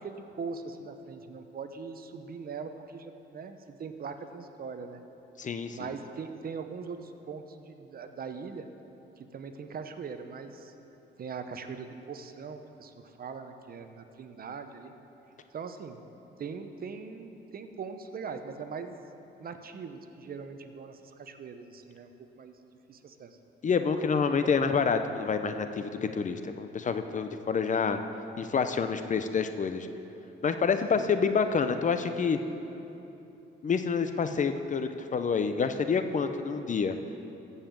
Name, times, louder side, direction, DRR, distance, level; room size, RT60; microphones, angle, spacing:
voice 1, 0.0-5.0 5.7-8.7 9.2-10.7 11.2-14.9 15.5-16.0 16.4-19.0 19.4-22.1 22.4-22.6 22.9-23.4 30.9-31.5, right 5 dB, 50° right, 8 dB, 0.8 m, -41 dB
voice 2, 5.4-5.9 23.6-28.0 28.4-29.9 30.4-32.4 33.6-37.0, left 5 dB, 40° left, 9 dB, 0.7 m, -28 dB
14.0 x 5.6 x 7.5 m, 3.0 s
cardioid pair, 90°, 20 cm